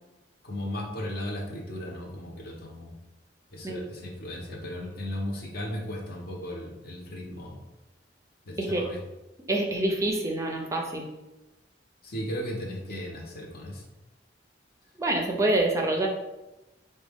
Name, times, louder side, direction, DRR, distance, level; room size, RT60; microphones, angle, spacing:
voice 1, 0.4-2.9 3.5-7.6 8.5-9.0 12.0-13.8, left 1 dB, 60° left, 0 dB, 0.8 m, -36 dB
voice 2, 8.6-8.9 9.5-11.1 15.0-16.1, right 2 dB, 20° right, 1 dB, 0.4 m, -26 dB
4.9 x 2.2 x 3.5 m, 1.0 s
head